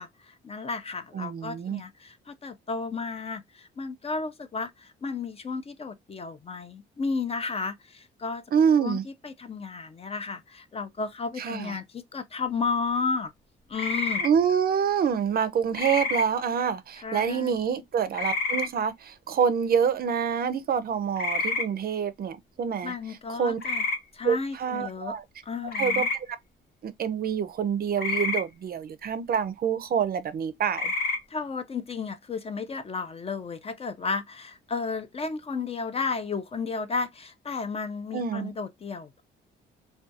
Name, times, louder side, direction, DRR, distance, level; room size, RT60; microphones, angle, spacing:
voice 1, 0.0-8.4 8.8-13.3 13.7-14.2 17.0-17.6 22.8-23.9 24.1-25.1 25.4-26.1 31.3-39.2, left 4 dB, 30° left, 0.4 m, -33 dB
voice 2, 1.1-1.8 8.5-9.0 11.4-11.8 14.2-22.9 23.3-23.6 24.2-25.2 25.8-26.4 26.8-30.9 38.1-38.5, right 7 dB, 50° right, 0.5 m, -26 dB
sound 1, 13.7-14.3 15.7-16.2 18.1-18.7 21.2-21.7 23.6-24.0 25.7-26.2 28.0-28.4 30.7-31.2, left 3 dB, 50° left, 0.9 m, -28 dB
2.4 x 2.2 x 2.6 m
cardioid pair, 90°, 20 cm